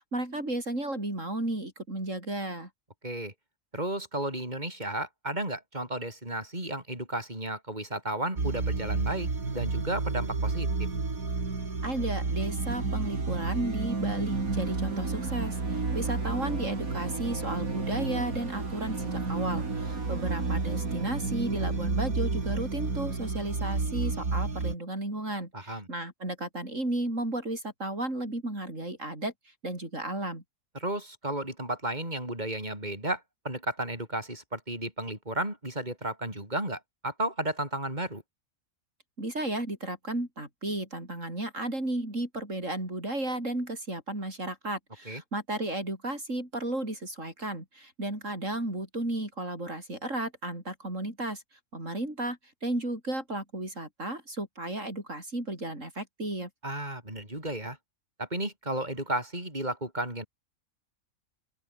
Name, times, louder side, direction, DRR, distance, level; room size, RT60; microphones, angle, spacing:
voice 1, 0.0-2.7 11.8-30.4 39.2-51.4 51.7-56.5, right 1 dB, 65° right, 7.6 m, -34 dB
voice 2, 3.0-3.3 3.7-10.7 25.5-25.9 30.7-38.2 45.1-45.2 56.6-57.8 58.2-60.3, right 1 dB, 30° right, 7.9 m, -33 dB
sound 1, 8.4-24.7, right 3 dB, 90° right, 3.7 m, -31 dB
open air
omnidirectional pair, 1.4 m